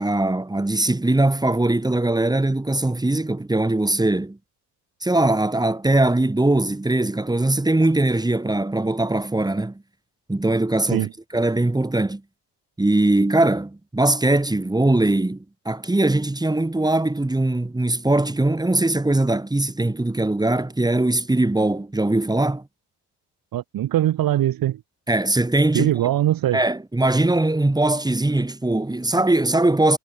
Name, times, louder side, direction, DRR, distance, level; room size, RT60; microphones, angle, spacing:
voice 1, 0.0-4.4 5.0-9.8 10.3-12.2 12.8-22.6 25.1-25.9 26.5-30.0, right 2 dB, 10° right, 4.0 m, -21 dB
voice 2, 23.5-24.8 25.7-26.6, right 13 dB, 65° right, 2.5 m, -21 dB
cardioid pair, 105°, 38 cm